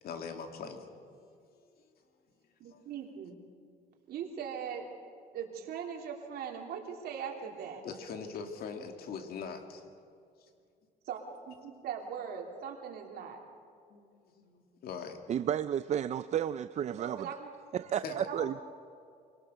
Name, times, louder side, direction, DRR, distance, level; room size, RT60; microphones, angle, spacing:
voice 1, 0.0-0.8 2.6-2.8 7.8-9.9 13.9-15.2 18.0-18.3, left 5 dB, 65° left, 5 dB, 2.4 m, -42 dB
voice 2, 2.6-3.4 4.1-4.8 5.3-7.8 11.0-11.2 11.5-13.4 16.9-17.5 18.1-18.6, right 7 dB, 65° right, 1 dB, 3.3 m, -40 dB
voice 3, 15.3-17.3 17.7-18.6, right 10 dB, 40° right, 13 dB, 0.5 m, -32 dB
25.0 x 18.0 x 6.8 m, 2.3 s
cardioid pair, 110°, 17 cm